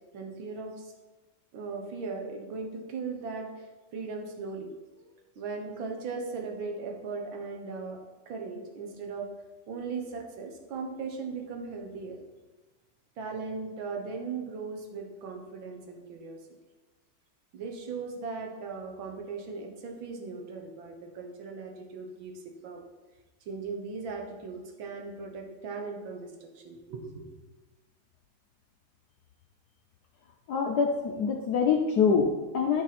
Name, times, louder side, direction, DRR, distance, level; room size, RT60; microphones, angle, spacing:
voice 1, 0.1-0.9 1.5-3.7 3.9-4.7 5.0-8.0 8.3-9.3 9.7-12.2 13.2-16.4 17.5-22.9 23.5-27.3, right 4 dB, 70° right, 2 dB, 1.9 m, -38 dB
voice 2, 30.5-32.8, left 5 dB, 65° left, 1 dB, 1.0 m, -25 dB
12.5 x 4.7 x 4.2 m, 1.2 s
omnidirectional pair, 2.3 m